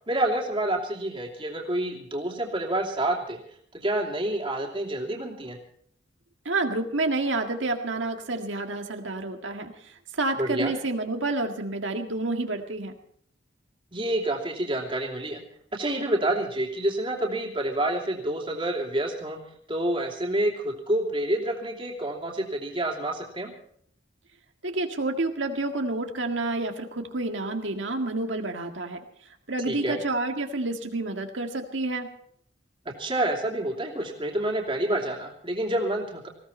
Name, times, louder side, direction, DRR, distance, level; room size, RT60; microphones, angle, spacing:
voice 1, 0.1-3.4 3.7-5.6 10.4-10.7 13.9-15.4 15.7-19.4 19.7-23.5 29.7-30.0 32.8-36.3, right 1 dB, 30° right, 0 dB, 2.8 m, -28 dB
voice 2, 6.5-12.9 24.6-29.0 29.5-32.1, right 2 dB, 75° right, 5 dB, 1.9 m, -29 dB
19.5 x 16.0 x 4.4 m, 0.64 s
head